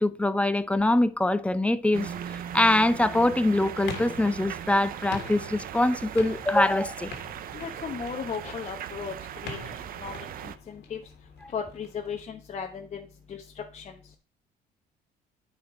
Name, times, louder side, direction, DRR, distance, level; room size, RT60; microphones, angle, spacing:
voice 1, 0.0-7.1, left 1 dB, 5° left, 0.5 m, -24 dB
sound 1, 1.9-10.6, right 10 dB, 60° right, 0.6 m, -39 dB
sound 2, 3.0-12.2, left 4 dB, 80° left, 1.8 m, -45 dB
voice 2, 7.5-9.1 9.4-9.7 10.0-11.0 11.5-13.9, left 6 dB, 40° left, 0.9 m, -36 dB
9.4 x 4.4 x 4.9 m
cardioid pair, 110°, 17 cm